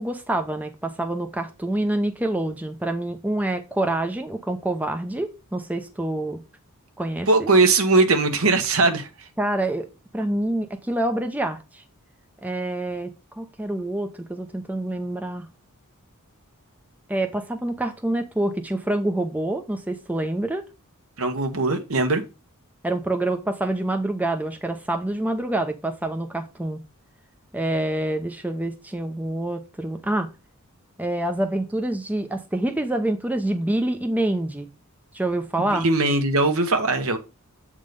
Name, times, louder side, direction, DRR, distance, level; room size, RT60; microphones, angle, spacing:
voice 1, 0.0-6.4 7.0-7.5 9.4-9.9 10.1-11.8 12.4-15.5 17.1-20.6 22.8-26.8 27.5-30.3 31.0-34.7 35.1-35.8, right 1 dB, 5° right, 6 dB, 0.5 m, -26 dB
voice 2, 7.3-9.1 21.2-22.2 35.7-37.2, right 3 dB, 70° right, 7 dB, 1.2 m, -20 dB
7.9 x 3.7 x 5.1 m, 0.29 s
head